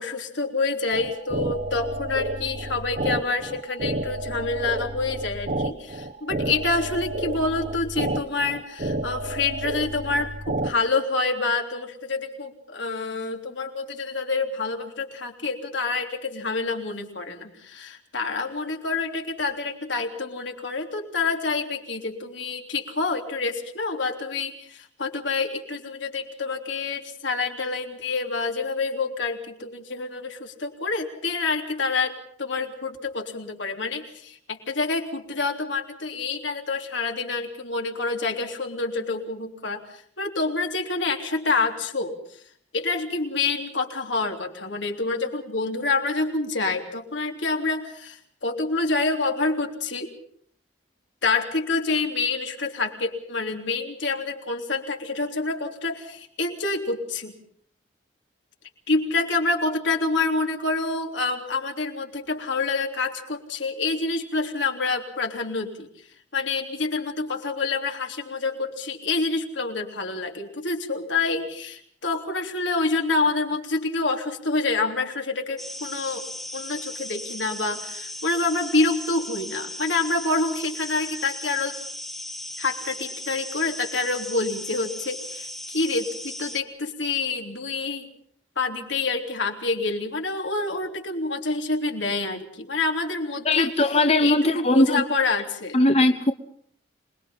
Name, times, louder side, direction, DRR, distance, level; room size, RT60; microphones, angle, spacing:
voice 1, 0.0-42.4 42.7-50.1 51.2-57.4 58.9-65.9 66.3-76.2 76.5-81.8 82.6-88.1 88.6-95.8, left 3 dB, 85° left, 3 dB, 3.4 m, -27 dB
sound 1, 0.9-10.7, right 1 dB, 50° right, 1.2 m, -30 dB
sound 2, 75.6-86.6, left 1 dB, ahead, 0.9 m, -37 dB
voice 2, 93.4-95.0 95.7-96.3, left 2 dB, 35° left, 9 dB, 0.8 m, -19 dB
26.5 x 21.5 x 5.7 m, 0.62 s
head